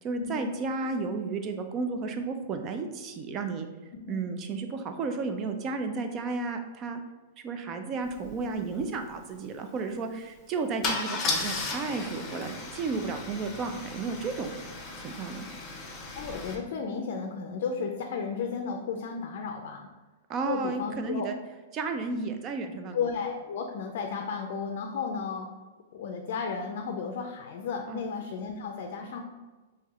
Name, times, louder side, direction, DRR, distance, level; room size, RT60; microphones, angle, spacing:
voice 1, 0.0-3.7 4.1-7.0 7.4-14.5 15.0-15.5 20.3-21.4 21.7-23.0 27.9-28.1, right 4 dB, 30° right, 6 dB, 0.4 m, -33 dB
Car / Engine starting / Idling, 8.2-8.3 8.6-8.8 10.8-16.6, left 3 dB, 25° left, 0.7 m, -35 dB
voice 2, 16.2-19.9 20.5-21.3 22.9-25.5 25.9-29.2, left 5 dB, 60° left, 3 dB, 0.4 m, -33 dB
4.6 x 3.2 x 2.4 m, 1.2 s
hypercardioid pair, 145°, 0 cm